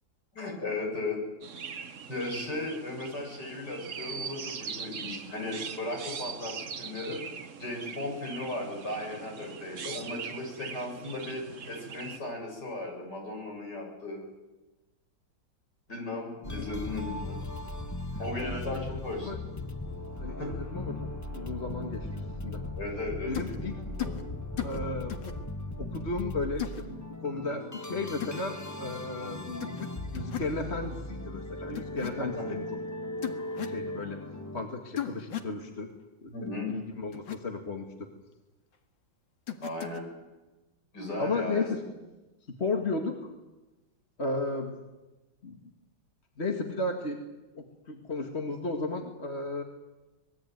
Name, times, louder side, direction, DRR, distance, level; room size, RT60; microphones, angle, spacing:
voice 1, 0.3-1.2 2.1-7.2 7.6-14.2 15.9-17.4 18.2-19.5 20.4-20.5 22.8-24.1 32.2-32.4 36.3-36.7 39.6-40.1 40.9-41.6, left 2 dB, 55° left, 1 dB, 8.2 m, -36 dB
Chirp tweet, 1.4-12.2, right 6 dB, 45° right, 1.3 m, -41 dB
sound 1, 16.4-34.6, left 2 dB, 15° left, 0.8 m, -38 dB
voice 2, 18.4-19.4 20.2-21.0 21.3-22.6 23.3-23.7 24.6-25.2 25.8-29.8 30.1-32.8 33.6-34.2 34.5-35.9 36.2-38.1 41.2-41.8 42.6-43.3 44.2-44.7 45.4-45.6 46.4-47.2 47.5-49.6, left 3 dB, 35° left, 3 dB, 2.1 m, -34 dB
sound 2, 23.3-23.6 24.0-24.2 24.6-24.8 25.1-25.3 26.6-26.8 28.2-28.4 29.6-29.9 30.1-30.5 31.8-32.1 33.2-33.8 35.0-35.5 37.1-37.4 39.5-40.0, left 10 dB, 70° left, 2.5 m, -35 dB
25.5 x 20.5 x 9.3 m, 1.1 s
omnidirectional pair, 2.2 m